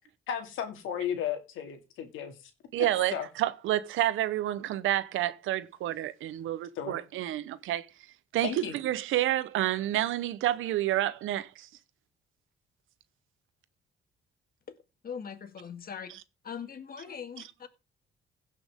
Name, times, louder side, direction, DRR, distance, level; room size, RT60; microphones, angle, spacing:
voice 1, 0.3-2.5 3.1-3.3 6.8-7.0 8.4-8.7, left 9 dB, 90° left, 2.3 m, -34 dB
voice 2, 2.7-7.9 8.3-11.7, right 13 dB, 85° right, 0.9 m, -29 dB
voice 3, 15.0-16.1 16.4-17.7, left 7 dB, 50° left, 2.0 m, -41 dB
16.5 x 6.0 x 3.6 m
cardioid pair, 90°, 20 cm